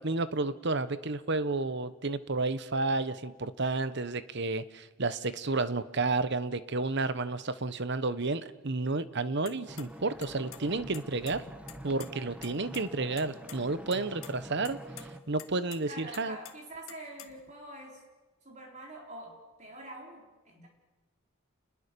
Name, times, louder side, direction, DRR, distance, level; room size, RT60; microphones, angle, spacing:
voice 1, 0.0-11.4 11.8-14.8 15.3-16.4, right 3 dB, 55° right, 13 dB, 1.1 m, -31 dB
sound 1, 9.5-9.8 10.2-10.6 10.9-12.1 12.4-12.5 12.7-12.8 13.2-13.6 13.9-14.3 14.6-15.0 15.4-15.8 16.1-17.5, left 11 dB, 90° left, 1.8 m, -47 dB
sound 2, 9.7-15.2, equal, 5° right, 1.5 m, -45 dB
voice 2, 15.9-18.0 18.4-20.7, right 1 dB, 35° right, 0 dB, 4.1 m, -46 dB
29.0 x 21.0 x 6.9 m, 1.2 s
head